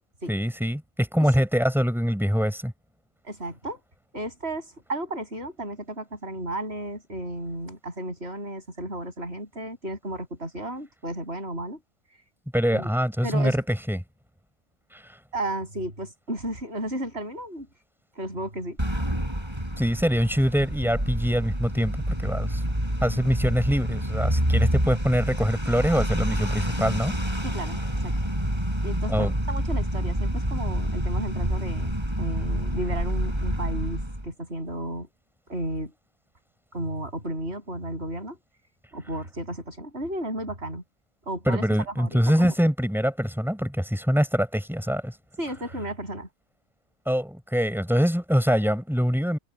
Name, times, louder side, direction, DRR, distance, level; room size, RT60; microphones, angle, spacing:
voice 1, 0.3-2.7 12.5-14.0 14.9-15.2 19.8-22.6 23.0-27.1 29.1-29.3 41.5-45.1 47.1-49.4, equal, ahead, 6.2 m, -24 dB
voice 2, 3.2-3.8 4.1-11.8 12.7-12.9 13.2-13.6 15.3-17.7 18.2-18.8 27.4-28.1 28.8-35.1 35.5-35.9 36.7-38.4 38.9-40.8 41.3-42.5 45.4-46.3, right 1 dB, 50° right, 7.6 m, -33 dB
sound 1, 18.8-34.3, equal, 20° right, 8.1 m, -27 dB
omnidirectional pair, 1.3 m